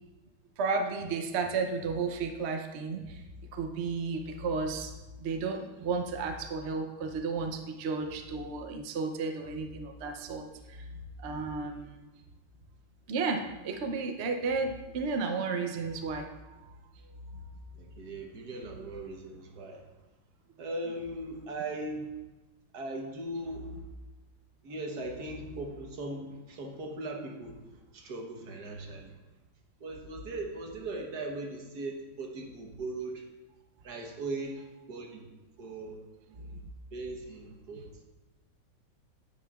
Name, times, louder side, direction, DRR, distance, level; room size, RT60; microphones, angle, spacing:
voice 1, 0.6-3.2 3.5-4.9 5.2-10.9 11.2-12.0 13.1-16.6, right 4 dB, 80° right, 4 dB, 0.5 m, -33 dB
voice 2, 17.8-19.9 20.6-22.1 22.7-23.8 24.6-29.2 29.8-33.2 33.8-34.6 34.9-35.3 35.6-36.0 36.3-36.6 36.9-38.0, right 2 dB, 60° right, 1 dB, 1.6 m, -39 dB
9.8 x 8.7 x 2.4 m, 1.1 s
omnidirectional pair, 2.1 m